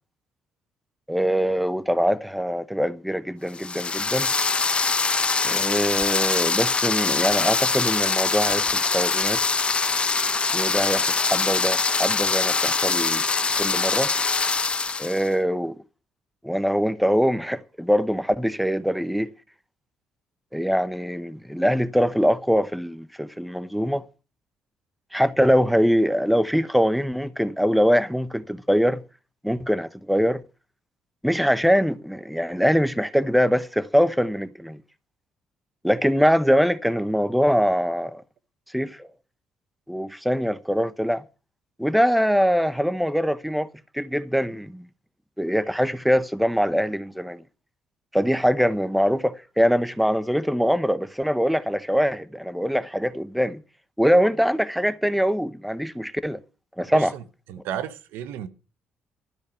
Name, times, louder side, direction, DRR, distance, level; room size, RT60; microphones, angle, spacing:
voice 1, 1.1-4.3 5.4-9.4 10.5-13.2 13.6-14.1 15.0-15.8 16.4-19.3 20.5-24.0 25.1-29.0 29.4-30.4 31.2-34.8 35.8-38.2 38.7-39.1 39.9-41.2 41.8-43.7 43.9-44.8 45.4-47.4 48.1-53.6 54.0-56.4 56.8-57.1, equal, ahead, 0.8 m, -23 dB
sound 1, 3.5-15.3, left 4 dB, 30° left, 0.9 m, -23 dB
voice 2, 56.9-57.2 57.5-58.5, right 10 dB, 80° right, 0.9 m, -33 dB
12.5 x 5.1 x 8.9 m
supercardioid pair, 70°, 4 cm